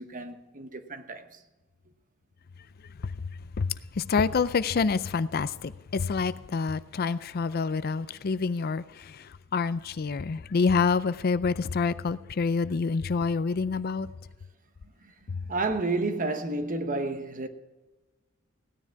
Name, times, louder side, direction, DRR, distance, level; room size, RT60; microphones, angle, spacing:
voice 1, 0.0-1.4 15.5-17.5, right 2 dB, 40° right, 1.1 m, -31 dB
voice 2, 3.6-14.1 15.3-15.4, left 5 dB, 45° left, 0.4 m, -27 dB
16.5 x 10.0 x 4.6 m
head